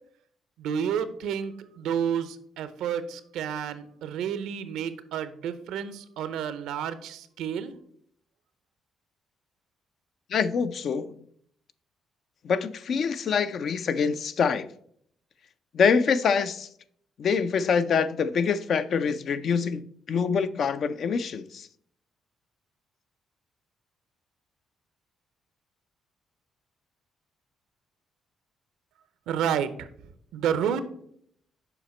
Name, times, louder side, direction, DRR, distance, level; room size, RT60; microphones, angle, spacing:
voice 1, 0.6-7.7 29.3-29.9 30.3-30.8, right 8 dB, 90° right, 0.6 m, -30 dB
voice 2, 10.3-11.2 12.4-14.7 15.7-16.7 17.2-21.7, left 6 dB, 60° left, 0.4 m, -25 dB
7.1 x 5.0 x 4.2 m
cardioid pair, 90°, 0 cm